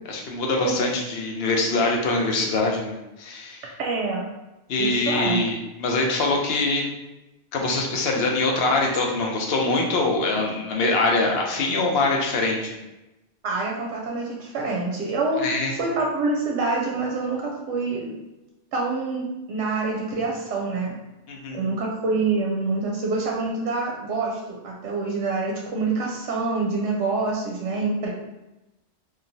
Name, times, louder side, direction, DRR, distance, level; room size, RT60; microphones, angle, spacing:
voice 1, 0.1-3.7 4.7-6.8 7.5-12.8 15.4-15.8 21.3-21.6, left 2 dB, 65° left, 0 dB, 0.8 m, -24 dB
voice 2, 3.8-4.2 4.8-5.4 13.4-15.5 15.8-18.1 18.7-20.9 21.5-28.1, right 3 dB, 85° right, -2 dB, 0.9 m, -26 dB
3.0 x 2.3 x 2.6 m, 0.98 s
omnidirectional pair, 1.2 m